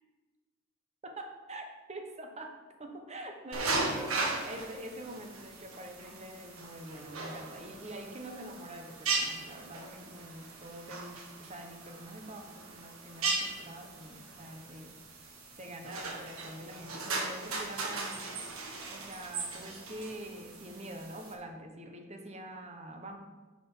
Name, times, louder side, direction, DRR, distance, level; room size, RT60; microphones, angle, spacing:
voice 1, 1.0-2.5 2.8-15.3 15.6-18.6 18.9-23.2, right 1 dB, 30° right, 4 dB, 1.1 m, -45 dB
sound 1, 3.5-21.3, right 3 dB, 90° right, 1.5 m, -38 dB
9.4 x 5.2 x 5.6 m, 1.3 s
head